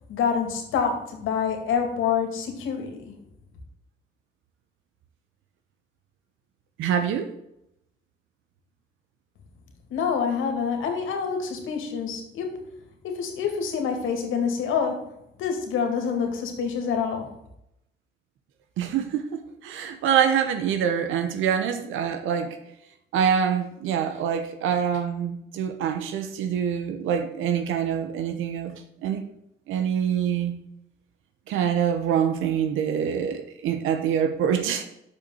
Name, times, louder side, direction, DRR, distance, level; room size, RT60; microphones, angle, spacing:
voice 1, 0.1-3.2 9.9-12.8 13.0-15.1 15.4-17.3, left 6 dB, 85° left, 4 dB, 2.2 m, -27 dB
voice 2, 6.8-7.3 18.8-22.6 23.1-28.7 29.0-29.2 29.7-30.5 31.5-34.8, right 8 dB, 90° right, 7 dB, 1.0 m, -25 dB
6.8 x 5.6 x 6.4 m, 0.79 s
cardioid pair, 90°, 20 cm